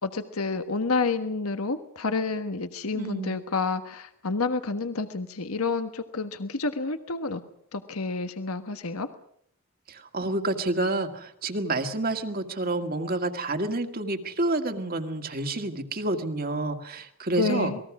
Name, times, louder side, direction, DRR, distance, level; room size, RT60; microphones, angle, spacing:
voice 1, 0.0-7.4 7.7-9.1 17.4-17.8, left 3 dB, 90° left, 9 dB, 1.4 m, -29 dB
voice 2, 2.9-3.4 9.9-17.7, right 2 dB, 45° right, 6 dB, 1.9 m, -29 dB
27.5 x 20.5 x 6.1 m, 0.65 s
head